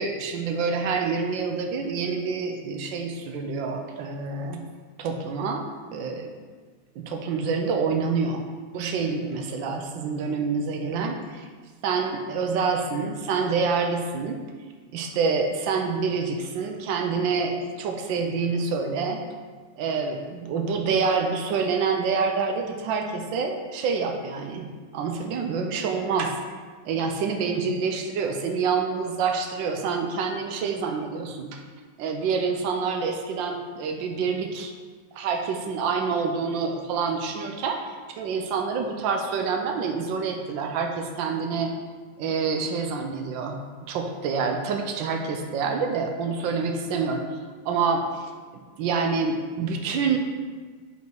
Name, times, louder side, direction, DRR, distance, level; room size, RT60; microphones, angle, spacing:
voice 1, 0.0-4.6 5.0-6.3 7.0-8.4 8.7-11.5 11.8-14.4 14.9-19.2 19.8-24.7 24.9-26.4 26.8-31.6 32.0-34.7 35.2-41.7 42.2-43.6 43.9-47.2 47.6-48.3 48.8-50.2, right 5 dB, 90° right, 4 dB, 1.4 m, -27 dB
5.3 x 5.0 x 4.5 m, 1.5 s
omnidirectional pair, 2.0 m